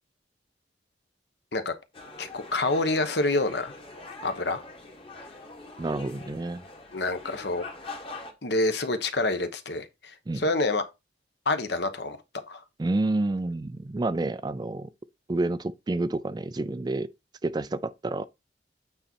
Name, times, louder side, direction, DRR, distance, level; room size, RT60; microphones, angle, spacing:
sound 1, 1.9-8.3, left 3 dB, 30° left, 1.4 m, -43 dB
voice 1, 2.2-3.7 4.2-4.6 6.9-7.6 8.4-10.8 11.5-12.2 12.5-12.6, left 2 dB, 65° left, 1.1 m, -27 dB
voice 2, 5.8-6.6 10.3-10.4 12.8-14.9 15.3-17.1 17.4-18.2, right 2 dB, 20° right, 0.3 m, -29 dB
8.8 x 4.1 x 4.5 m
head